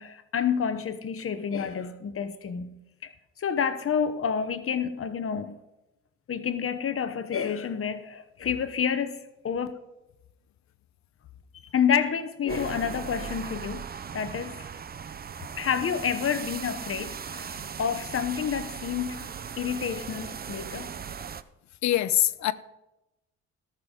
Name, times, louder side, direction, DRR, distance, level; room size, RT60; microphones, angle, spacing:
voice 1, 0.0-2.7 3.0-3.1 3.4-5.5 6.3-9.7 11.7-13.8 14.1-14.7 15.6-19.3 19.6-20.9, left 7 dB, 45° left, 1.1 m, -29 dB
sound 1, 12.5-21.4, right 7 dB, 30° right, 0.6 m, -38 dB
voice 2, 21.8-22.5, left 13 dB, 70° left, 0.8 m, -23 dB
18.0 x 6.9 x 3.9 m
cardioid pair, 90°, 30 cm